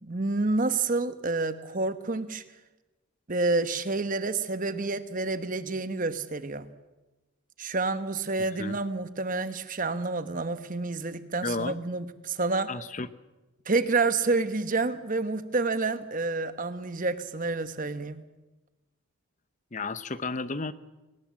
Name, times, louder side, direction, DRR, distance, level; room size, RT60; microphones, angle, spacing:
voice 1, 0.0-2.4 3.3-6.7 7.6-12.7 13.6-18.2, right 3 dB, 35° right, 11 dB, 1.1 m, -29 dB
voice 2, 11.4-11.8 12.7-13.1 19.7-20.7, left 3 dB, 35° left, 14 dB, 0.8 m, -32 dB
24.5 x 19.0 x 7.5 m, 1.1 s
head